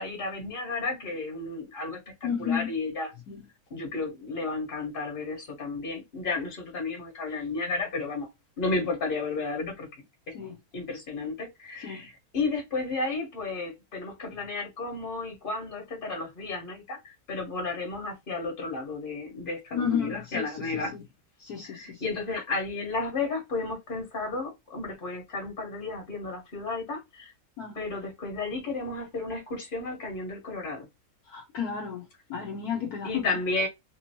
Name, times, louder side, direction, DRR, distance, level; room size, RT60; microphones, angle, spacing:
voice 1, 0.0-3.1 3.7-8.3 8.6-9.9 10.7-20.9 21.6-27.3 27.7-30.9 33.0-33.7, left 3 dB, 30° left, 1.5 m, -33 dB
voice 2, 2.2-2.7 3.3-3.4 10.3-10.6 11.8-12.1 19.7-21.0 21.4-22.0 27.6-27.8 31.3-32.0 32.3-33.3, left 7 dB, 65° left, 1.3 m, -32 dB
3.5 x 3.0 x 2.9 m
omnidirectional pair, 1.8 m